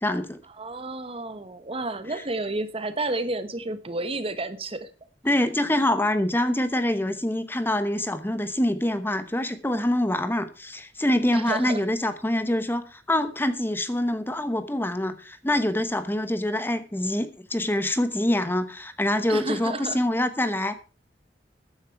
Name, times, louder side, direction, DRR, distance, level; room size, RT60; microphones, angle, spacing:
voice 1, 0.0-0.4 2.1-2.2 5.2-20.8, left 1 dB, 15° left, 1.0 m, -25 dB
voice 2, 0.6-4.9 11.3-11.8 19.3-20.0, right 2 dB, 35° right, 1.2 m, -31 dB
14.0 x 10.0 x 4.6 m
head